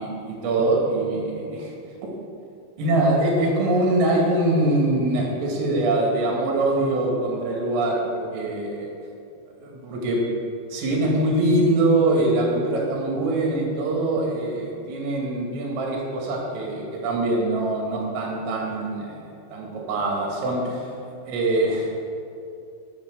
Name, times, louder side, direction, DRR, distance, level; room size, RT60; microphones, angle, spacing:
voice 1, 0.0-1.7 2.8-8.9 9.6-10.3 10.7-19.2 19.5-20.9 21.3-21.9, right 2 dB, 85° right, -2 dB, 5.0 m, -23 dB
11.0 x 7.6 x 7.7 m, 2.5 s
omnidirectional pair, 5.8 m